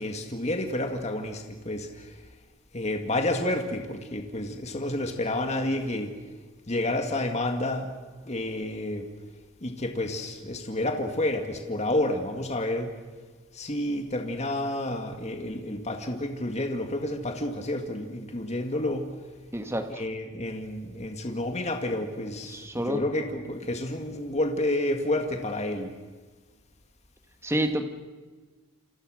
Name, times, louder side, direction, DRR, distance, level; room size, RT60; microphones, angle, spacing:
voice 1, 0.0-2.2 2.7-6.1 6.7-7.9 8.2-9.1 9.6-12.9 13.5-19.1 19.9-25.9, left 1 dB, 30° left, 4 dB, 2.1 m, -30 dB
voice 2, 19.5-20.0 22.5-23.0 27.4-27.8, right 1 dB, 10° right, 6 dB, 1.8 m, -28 dB
28.5 x 26.5 x 6.5 m, 1.4 s
head